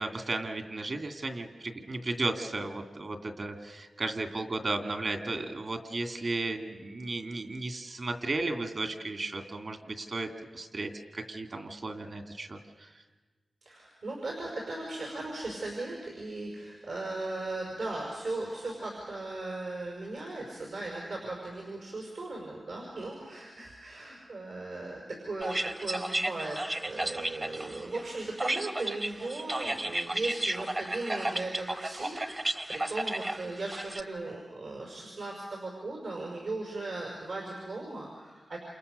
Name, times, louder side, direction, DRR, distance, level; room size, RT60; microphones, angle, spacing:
voice 1, 0.0-10.3 10.5-12.9, right 2 dB, 45° right, 5 dB, 2.7 m, -34 dB
voice 2, 13.7-38.6, right 2 dB, 75° right, -1 dB, 5.8 m, -37 dB
sound 1, 25.4-34.0, right 1 dB, 25° right, 0.9 m, -33 dB
29.0 x 28.5 x 6.9 m, 1.3 s
wide cardioid pair, 140°, 0 cm